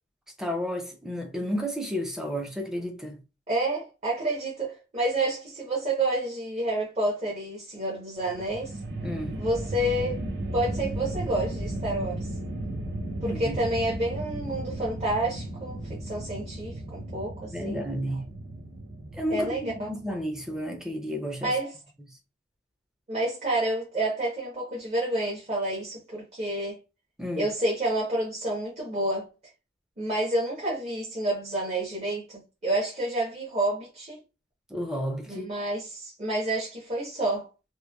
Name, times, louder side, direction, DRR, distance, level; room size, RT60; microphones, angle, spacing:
voice 1, 0.4-3.2 9.0-9.4 13.2-13.6 17.5-18.3 19.1-21.6 27.2-27.5 34.7-35.5, equal, 5° right, 0.4 m, -32 dB
voice 2, 3.5-8.8 9.3-10.2 10.5-12.2 13.2-17.8 19.3-19.9 21.4-21.7 23.1-26.8 27.4-29.2 30.0-34.2 35.3-37.5, right 1 dB, 35° right, 0.7 m, -29 dB
sound 1, 8.2-20.5, right 1 dB, 90° right, 0.7 m, -35 dB
2.9 x 2.1 x 2.2 m
head